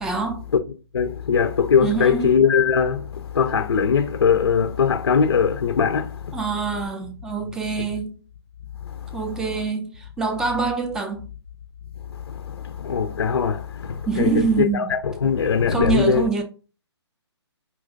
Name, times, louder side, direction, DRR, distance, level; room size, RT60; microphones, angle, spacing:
voice 1, 0.0-0.4 1.8-2.3 6.3-8.1 9.1-11.3 14.1-14.9 15.7-16.4, right 4 dB, 5° right, 0.3 m, -25 dB
voice 2, 0.9-6.4 12.3-16.3, left 6 dB, 65° left, 0.5 m, -21 dB
5.1 x 2.9 x 2.5 m
figure-of-eight pair, 135°, 15 cm